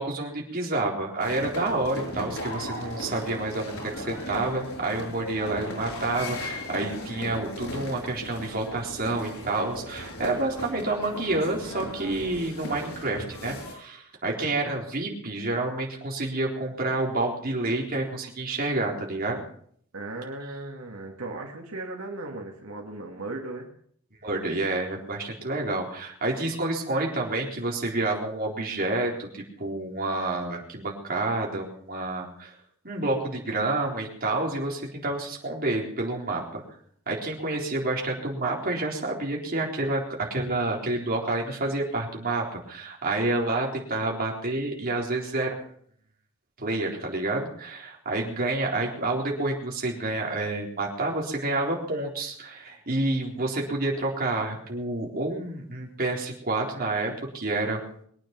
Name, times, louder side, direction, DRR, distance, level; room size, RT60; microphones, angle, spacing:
voice 1, 0.0-19.4 24.2-32.5 32.8-36.6 37.1-45.6 46.6-58.1, right 2 dB, 45° right, -1 dB, 4.0 m, -29 dB
sound 1, 1.2-13.7, left 1 dB, 90° left, 6.9 m, -37 dB
voice 2, 19.9-23.7, right 2 dB, 90° right, 1 dB, 2.3 m, -37 dB
23.0 x 9.5 x 6.1 m, 0.63 s
head